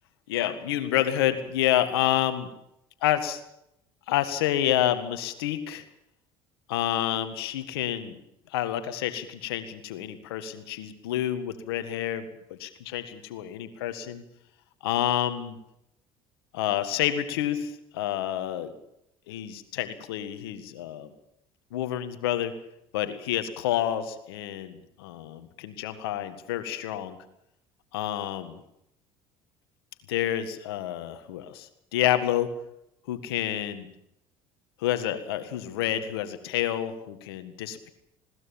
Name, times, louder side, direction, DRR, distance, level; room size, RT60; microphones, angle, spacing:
voice 1, 0.3-2.5 3.0-3.4 4.1-5.8 6.7-8.2 8.5-14.2 14.8-15.6 16.5-18.7 19.3-21.1 21.7-22.5 22.9-27.2 27.9-28.6 30.1-32.5 33.1-33.9 34.8-37.9, left 12 dB, 85° left, 10 dB, 1.9 m, -29 dB
21.0 x 18.0 x 7.3 m, 0.79 s
hypercardioid pair, 75°, 12 cm